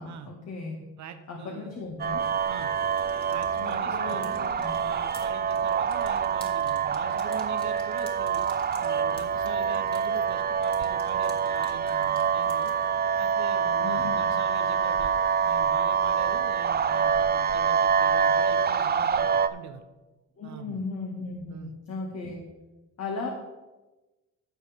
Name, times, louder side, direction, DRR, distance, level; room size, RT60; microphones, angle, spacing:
voice 1, 0.0-0.8 1.3-2.3 3.6-4.8 13.8-14.4 20.4-22.4 23.0-23.3, left 3 dB, 55° left, -1 dB, 2.0 m, -36 dB
voice 2, 1.0-1.7 2.5-2.7 3.3-8.4 8.8-12.7 13.2-15.2 15.4-19.8 20.4-20.8 21.5-21.7, right 8 dB, 70° right, 7 dB, 1.0 m, -43 dB
sound 1, 2.0-19.5, right 7 dB, 35° right, 0.5 m, -26 dB
sound 2, 2.8-12.9, left 1 dB, 20° left, 2.2 m, -53 dB
16.0 x 6.2 x 3.6 m, 1.1 s
cardioid pair, 90°, 30 cm